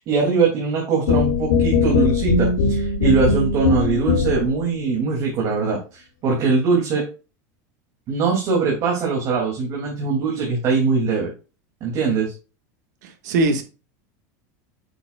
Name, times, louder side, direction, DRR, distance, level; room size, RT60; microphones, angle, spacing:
voice 1, 0.0-7.0 8.1-11.3 11.8-12.3, right 4 dB, 40° right, 2.9 m, -21 dB
sound 1, 1.1-4.6, left 4 dB, 85° left, 2.4 m, -20 dB
voice 2, 13.0-13.6, right 2 dB, 85° right, 1.9 m, -21 dB
8.5 x 7.0 x 2.5 m
supercardioid pair, 145°, 9 cm